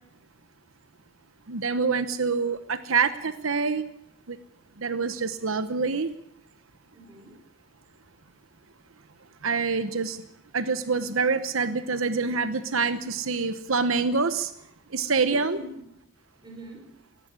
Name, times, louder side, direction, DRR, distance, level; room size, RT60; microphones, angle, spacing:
voice 1, 1.5-3.8 4.3-4.4 4.8-6.1 9.4-10.2 10.5-14.5 14.9-15.6, right 4 dB, 85° right, 12 dB, 1.0 m, -26 dB
voice 2, 6.9-7.4 7.7-8.1 8.5-8.6 13.5-13.6 15.3-15.8 16.4-16.9, right 1 dB, 20° right, 3 dB, 5.2 m, -44 dB
18.5 x 15.5 x 9.6 m, 0.76 s
head